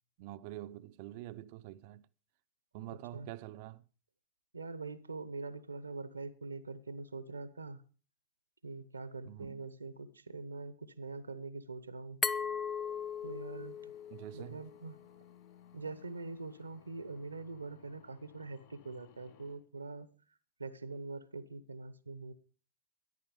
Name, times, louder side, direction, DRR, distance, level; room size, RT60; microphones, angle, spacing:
voice 1, 0.2-2.1 2.7-3.8 9.2-9.6 14.1-14.6, right 15 dB, 50° right, 0.7 m, -46 dB
voice 2, 4.5-7.8 8.6-12.2 13.2-13.9 14.3-15.0 15.7-20.1 20.6-22.3, right 3 dB, 80° right, 1.0 m, -44 dB
Glass, 12.2-15.0, left 6 dB, 15° left, 0.7 m, -38 dB
sound 1, 12.4-19.6, left 9 dB, 50° left, 4.0 m, -62 dB
13.5 x 11.0 x 5.3 m
figure-of-eight pair, 90°, 0 cm